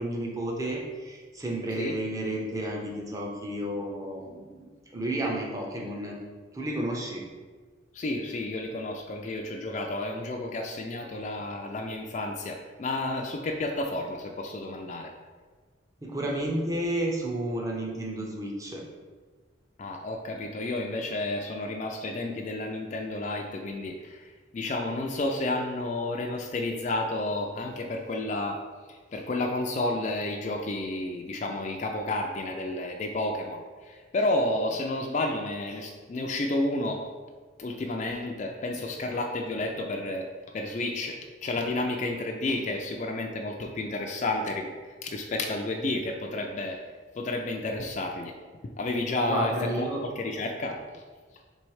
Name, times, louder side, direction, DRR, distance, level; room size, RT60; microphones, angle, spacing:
voice 1, 0.0-6.2 6.5-7.2 16.0-18.8 49.3-50.0, right 1 dB, 15° right, -1 dB, 0.6 m, -31 dB
voice 2, 7.9-15.1 19.8-24.3 24.5-28.6 28.9-37.0 37.6-40.3 40.5-46.8 47.1-48.3 48.8-51.0, left 2 dB, 35° left, 2 dB, 0.3 m, -31 dB
3.4 x 3.1 x 4.7 m, 1.4 s
head